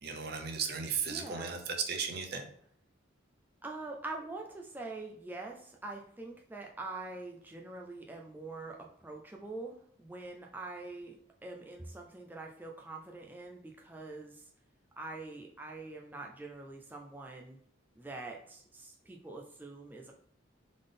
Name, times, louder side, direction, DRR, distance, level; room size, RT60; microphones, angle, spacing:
voice 1, 0.0-2.5, right 6 dB, 55° right, 5 dB, 0.7 m, -35 dB
voice 2, 1.1-1.6 3.6-14.5 15.0-17.6 18.0-20.1, right 2 dB, 10° right, 0 dB, 0.4 m, -44 dB
3.8 x 3.4 x 3.7 m, 0.64 s
head